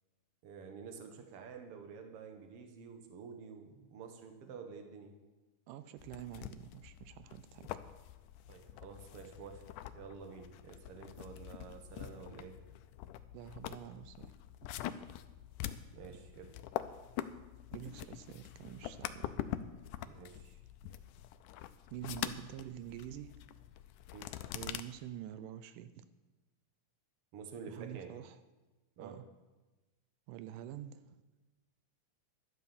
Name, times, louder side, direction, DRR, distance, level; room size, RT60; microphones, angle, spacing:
voice 1, 0.4-5.1 8.5-9.6 9.9-12.6 15.9-16.5 20.0-20.6 24.1-24.4 27.3-28.2 29.0-29.2, right 6 dB, 55° right, 6 dB, 2.0 m, -49 dB
voice 2, 5.7-7.7 13.3-14.3 17.7-19.3 21.9-23.3 24.5-26.1 27.7-28.4 29.0-29.3 30.3-31.2, right 11 dB, 85° right, 13 dB, 2.3 m, -47 dB
sound 1, 6.0-24.8, left 12 dB, 80° left, 2.0 m, -45 dB
12.5 x 10.5 x 7.1 m, 1.2 s
omnidirectional pair, 3.7 m